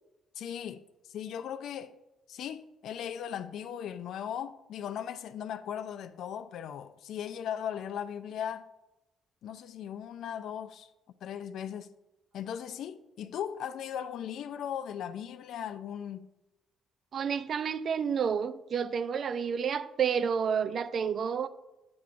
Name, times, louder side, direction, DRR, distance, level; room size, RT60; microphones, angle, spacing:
voice 1, 0.4-0.8 1.1-2.0 2.3-8.7 9.4-10.9 11.2-11.9 12.3-16.3, left 9 dB, 75° left, 0.4 m, -38 dB
voice 2, 17.1-21.5, right 7 dB, 55° right, 0.4 m, -30 dB
9.3 x 6.9 x 2.5 m
cardioid pair, 90°, 0 cm